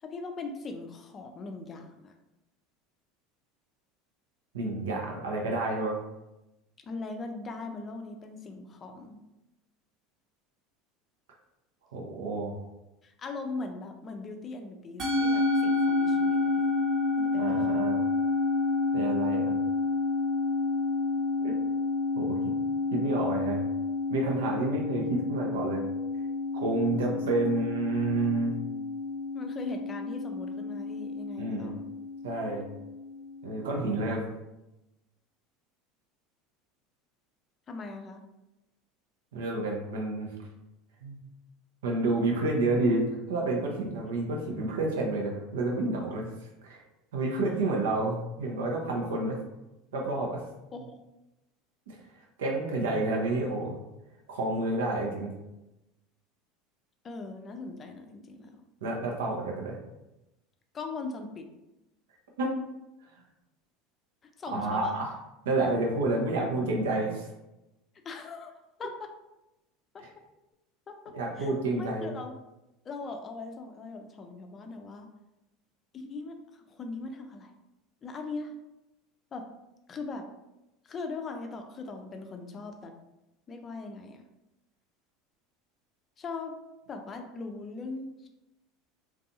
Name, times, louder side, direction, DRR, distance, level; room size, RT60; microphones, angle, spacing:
voice 1, 0.0-2.1 6.8-9.2 13.0-16.7 17.2-17.6 29.3-31.9 37.7-38.2 50.7-51.0 57.0-58.6 60.7-61.5 64.4-65.1 68.0-68.5 68.8-69.1 69.9-70.0 70.9-72.4 72.8-75.1 75.9-77.5 78.0-78.5 79.3-79.5 79.9-80.3 80.8-82.9 83.5-84.2 86.2-86.5 86.9-88.3, left 3 dB, 35° left, 5 dB, 0.4 m, -40 dB
voice 2, 4.5-6.0 11.9-12.6 17.3-18.0 18.9-19.6 21.4-21.6 22.2-22.4 22.9-23.6 24.1-25.9 26.5-28.5 31.4-31.7 32.2-32.7 33.4-34.3 39.3-40.3 41.0-41.3 41.8-46.3 46.6-46.8 47.1-49.4 49.9-50.4 51.9-52.0 52.4-53.8 54.3-55.3 58.8-59.8 62.4-62.5 64.5-65.1 65.4-67.3 71.1-72.1, right 2 dB, 85° right, 0 dB, 0.6 m, -29 dB
Musical instrument, 15.0-33.5, left 3 dB, 50° right, 0.9 m, -29 dB
2.5 x 2.3 x 2.6 m, 0.96 s
hypercardioid pair, 90°, 0 cm